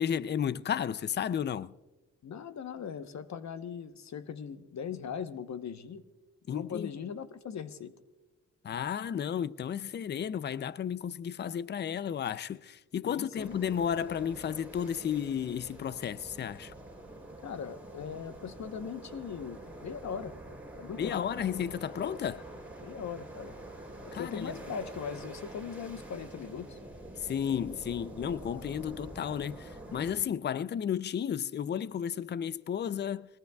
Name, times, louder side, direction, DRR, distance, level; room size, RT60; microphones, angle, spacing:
voice 1, 0.0-1.7 6.5-6.9 8.6-16.7 21.0-22.5 24.1-24.6 27.2-33.3, left 8 dB, 35° left, 0.4 m, -33 dB
voice 2, 2.2-6.0 6.5-7.9 13.0-13.5 17.4-20.3 20.8-21.2 22.8-23.5 24.1-26.8, left 7 dB, 60° left, 1.0 m, -39 dB
sound 1, 13.4-30.1, right 1 dB, 5° right, 6.7 m, -46 dB
23.0 x 20.0 x 2.3 m
cardioid pair, 85°, 32 cm